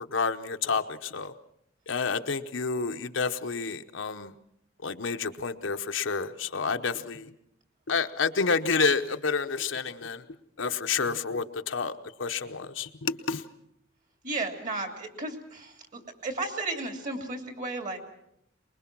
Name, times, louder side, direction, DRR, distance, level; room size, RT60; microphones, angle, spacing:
voice 1, 0.0-1.3 1.9-4.3 4.8-7.3 7.9-10.2 10.6-11.9 12.2-13.4, left 5 dB, 70° left, 7 dB, 0.9 m, -29 dB
voice 2, 14.2-18.0, right 2 dB, 45° right, 5 dB, 2.9 m, -34 dB
24.0 x 21.0 x 6.1 m, 0.76 s
head